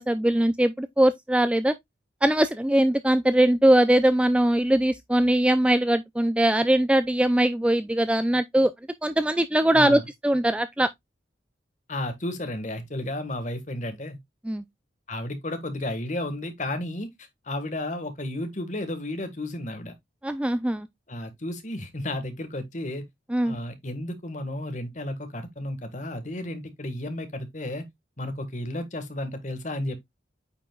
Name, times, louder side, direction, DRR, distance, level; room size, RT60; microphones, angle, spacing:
voice 1, 0.0-1.7 2.2-8.7 9.0-10.9 14.4-14.6 20.2-20.9 23.3-23.6, right 1 dB, 5° right, 0.3 m, -21 dB
voice 2, 11.9-14.2 15.1-19.9 21.1-23.0 23.4-27.9 28.2-30.0, left 1 dB, 40° left, 1.5 m, -33 dB
8.5 x 5.2 x 2.3 m
head